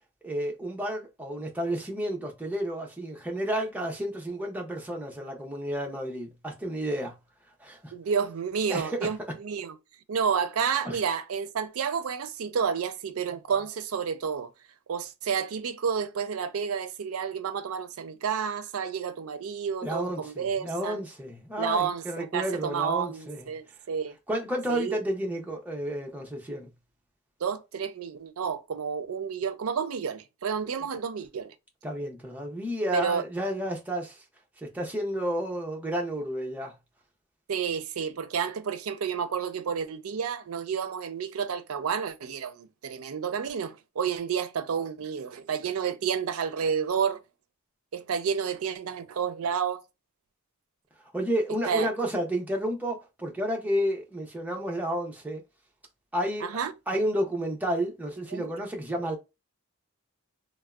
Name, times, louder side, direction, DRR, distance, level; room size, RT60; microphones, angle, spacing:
voice 1, 0.2-7.1 7.6-7.9 8.7-9.1 10.8-11.0 19.8-23.4 24.3-26.7 31.8-34.2 34.6-36.8 51.1-55.4 56.1-56.5 56.9-59.2, equal, 5° right, 0.6 m, -31 dB
voice 2, 7.9-9.7 10.1-14.5 14.9-21.0 21.6-24.1 24.7-25.0 27.4-31.5 32.9-33.2 37.5-47.2 47.9-49.8 51.7-51.9 56.4-56.7 58.3-58.5, right 7 dB, 75° right, 0.4 m, -30 dB
3.4 x 2.0 x 2.3 m
head